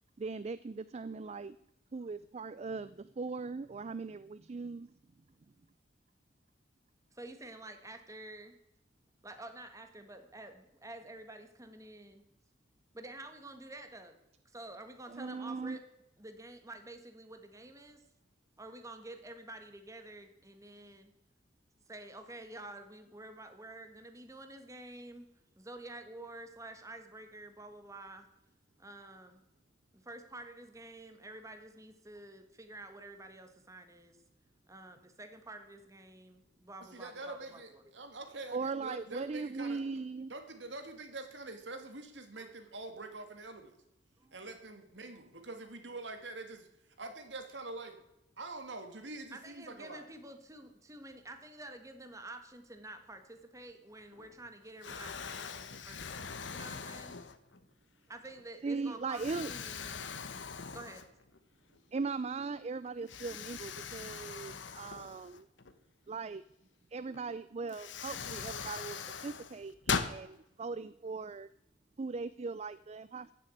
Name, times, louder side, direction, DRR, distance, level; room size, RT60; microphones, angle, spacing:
voice 1, 0.2-1.6 1.9-4.9 15.1-15.8 38.5-40.3 58.6-59.5 61.9-65.5 66.1-66.4 66.9-71.5 72.0-73.3, right 4 dB, 35° right, 16 dB, 0.4 m, -39 dB
voice 2, 7.1-8.6 9.2-12.2 12.9-14.2 14.4-15.9 16.2-18.0 18.6-21.1 21.9-25.3 25.6-28.3 28.8-29.4 29.9-34.2 34.7-37.9 42.4-42.5 44.2-44.4 49.3-57.2 58.1-59.9 60.7-61.1, right 2 dB, 15° right, 7 dB, 1.5 m, -49 dB
voice 3, 36.8-39.8 40.3-43.7 44.3-46.7 47.0-48.0 48.4-50.1, right 2 dB, 70° right, 7 dB, 2.3 m, -45 dB
Explosion, 54.1-54.5 54.8-57.6 58.2-58.4 59.1-61.4 61.7-61.8 63.1-65.7 67.1-67.2 67.7-70.2, left 6 dB, 80° left, 1.1 m, -40 dB
15.5 x 7.3 x 8.4 m, 0.83 s
head